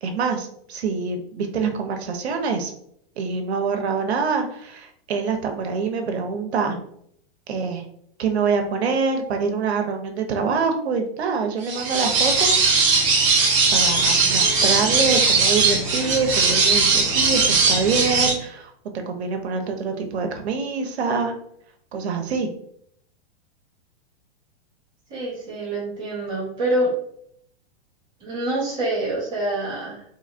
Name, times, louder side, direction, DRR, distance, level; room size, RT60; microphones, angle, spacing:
voice 1, 0.0-2.7 3.2-6.8 7.5-7.8 8.2-12.9 13.7-21.3 21.9-22.5, right 5 dB, 85° right, 4 dB, 0.8 m, -25 dB
sound 1, 11.6-18.3, right 4 dB, 30° right, 0.7 m, -19 dB
voice 2, 25.1-26.9 28.2-30.0, right 1 dB, 5° right, -14 dB, 0.3 m, -26 dB
4.0 x 2.6 x 2.5 m, 0.69 s
supercardioid pair, 175°, 31 cm